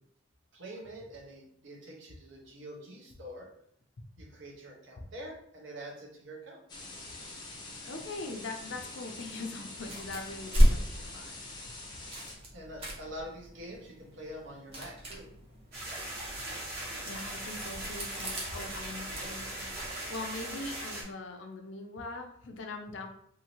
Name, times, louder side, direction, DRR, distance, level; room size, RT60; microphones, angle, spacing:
voice 1, 0.5-3.5 4.2-6.6 12.5-15.3, right 1 dB, 75° right, -1 dB, 0.8 m, -45 dB
sound 1, 6.7-12.4, left 2 dB, 25° left, 0.6 m, -45 dB
voice 2, 7.8-11.4 17.0-23.1, left 3 dB, 70° left, 4 dB, 0.5 m, -42 dB
sound 2, 9.8-19.9, equal, 30° right, 0.7 m, -33 dB
sound 3, 15.7-21.0, right 1 dB, 55° right, 1.0 m, -39 dB
2.7 x 2.7 x 2.9 m, 0.68 s
head